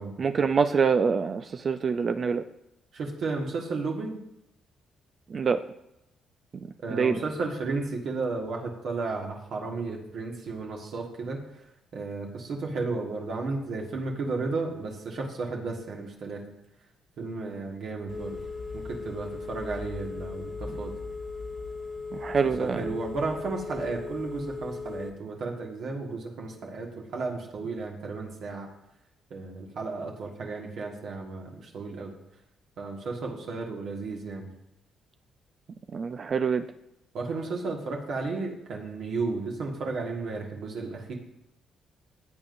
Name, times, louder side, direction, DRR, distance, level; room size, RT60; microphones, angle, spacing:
voice 1, 0.2-2.4 5.3-5.6 6.9-7.1 22.1-22.8 35.9-36.7, right 5 dB, 45° right, 0.4 m, -25 dB
voice 2, 2.9-4.2 6.8-11.7 11.9-16.4 17.2-18.4 18.7-20.9 22.4-28.7 29.3-32.1 32.8-34.5 37.1-41.1, right 3 dB, 65° right, 1.6 m, -33 dB
Telephone, 18.1-25.1, left 4 dB, 40° left, 1.0 m, -37 dB
15.5 x 7.8 x 2.6 m
cardioid pair, 90°, 0 cm